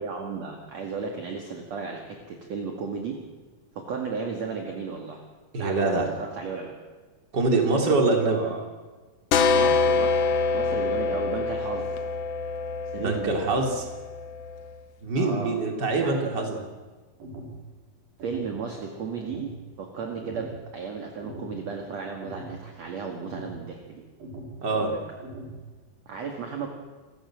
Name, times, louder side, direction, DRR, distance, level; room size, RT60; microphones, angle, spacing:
voice 1, 0.0-3.2 3.8-5.2 5.5-6.7 8.3-8.7 9.5-12.0 12.9-13.5 15.2-15.6 16.0-16.5 18.2-24.0 24.7-25.0 26.1-26.7, right 5 dB, 50° right, 2 dB, 2.9 m, -34 dB
voice 2, 5.5-6.1 7.3-8.4 13.0-13.9 15.0-16.6 24.6-24.9, right 3 dB, 30° right, 2 dB, 3.5 m, -24 dB
sound 1, 9.3-14.8, left 4 dB, 65° left, 1.6 m, -25 dB
sound 2, 17.2-17.6 18.2-18.6 19.2-19.6 20.2-20.6 21.2-21.6 22.2-22.6 23.2-23.6 24.2-24.6 25.2-25.6, right 1 dB, 75° right, 6.7 m, -40 dB
28.0 x 15.0 x 7.7 m, 1.4 s
omnidirectional pair, 4.1 m